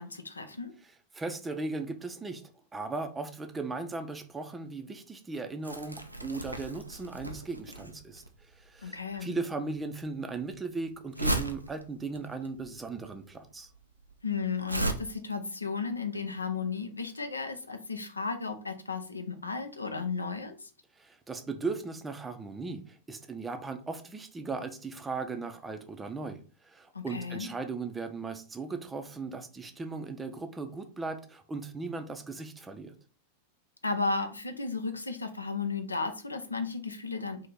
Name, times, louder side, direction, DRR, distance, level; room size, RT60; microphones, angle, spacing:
voice 1, 0.0-0.7 8.8-9.3 14.2-20.7 26.9-27.5 33.8-37.5, left 4 dB, 80° left, 8 dB, 0.5 m, -34 dB
voice 2, 0.8-2.4 2.7-13.7 21.0-32.9, right 3 dB, 15° right, 6 dB, 0.5 m, -37 dB
Crumpling crinkling, 5.6-14.9, right 2 dB, 85° right, 0.4 m, -36 dB
2.8 x 2.7 x 3.6 m, 0.37 s
figure-of-eight pair, 90°, 0 cm